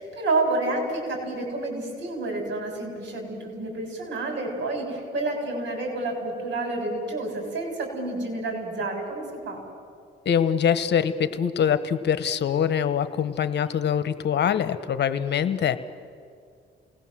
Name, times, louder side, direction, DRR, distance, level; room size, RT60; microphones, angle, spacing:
voice 1, 0.0-9.6, right 2 dB, 65° right, 2 dB, 7.4 m, -29 dB
voice 2, 10.2-15.8, left 8 dB, 60° left, 12 dB, 1.2 m, -24 dB
29.0 x 20.0 x 7.6 m, 2.2 s
cardioid pair, 90°, 20 cm